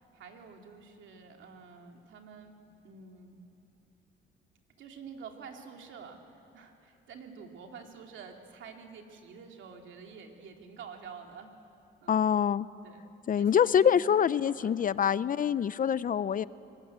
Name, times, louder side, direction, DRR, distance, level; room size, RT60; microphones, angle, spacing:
voice 1, 0.0-2.5 2.8-3.4 4.8-11.5 12.0-12.3 12.8-14.9, right 6 dB, 75° right, 3 dB, 2.7 m, -49 dB
voice 2, 12.1-12.7 13.3-16.4, left 8 dB, 45° left, 18 dB, 0.5 m, -25 dB
24.5 x 20.0 x 8.1 m, 2.7 s
cardioid pair, 90°, 20 cm